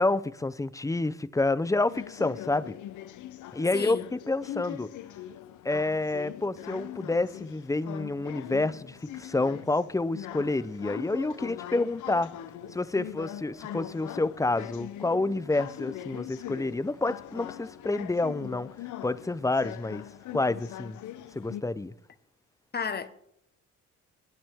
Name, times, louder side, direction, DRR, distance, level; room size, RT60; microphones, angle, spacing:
voice 1, 0.0-2.7 3.5-4.9 5.6-12.3 12.7-18.7 19.0-20.0 20.3-21.0 21.3-21.9, left 2 dB, 10° left, 0.5 m, -28 dB
sound 1, 1.9-21.6, left 12 dB, 75° left, 0.8 m, -42 dB
voice 2, 3.7-4.0 22.7-23.1, left 6 dB, 35° left, 1.2 m, -32 dB
24.5 x 8.6 x 3.5 m
cardioid pair, 90°, 30 cm